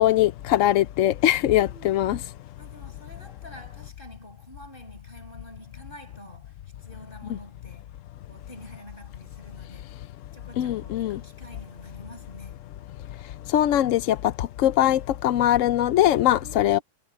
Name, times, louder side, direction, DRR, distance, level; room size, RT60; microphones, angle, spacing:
voice 1, 0.0-2.2 10.6-11.2 13.5-16.8, left 13 dB, 70° left, 0.8 m, -21 dB
voice 2, 1.4-7.9 8.3-10.0 10.3-12.6 16.4-16.8, equal, 30° left, 7.7 m, -47 dB
omnidirectional pair, 1.8 m